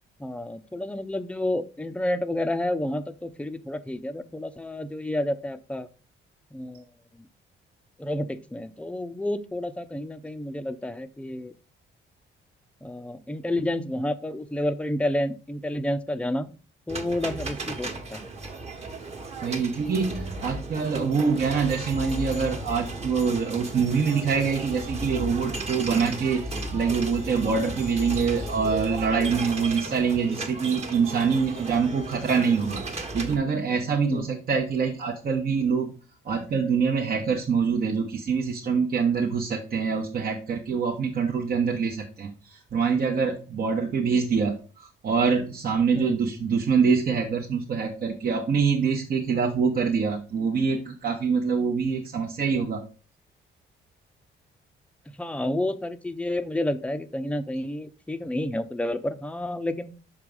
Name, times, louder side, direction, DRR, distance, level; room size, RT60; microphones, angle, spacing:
voice 1, 0.2-5.9 6.5-6.8 7.2-7.3 8.0-11.5 12.8-16.5 16.9-18.3 34.0-34.3 45.9-46.4 55.2-60.0, left 1 dB, 5° left, 10 dB, 0.5 m, -30 dB
sound 1, 16.9-33.4, right 2 dB, 30° right, 1.3 m, -35 dB
voice 2, 19.4-26.5 26.7-35.9 36.2-52.8, right 5 dB, 50° right, 1 dB, 0.9 m, -25 dB
6.0 x 4.7 x 3.6 m, 0.35 s
cardioid pair, 90°, 20 cm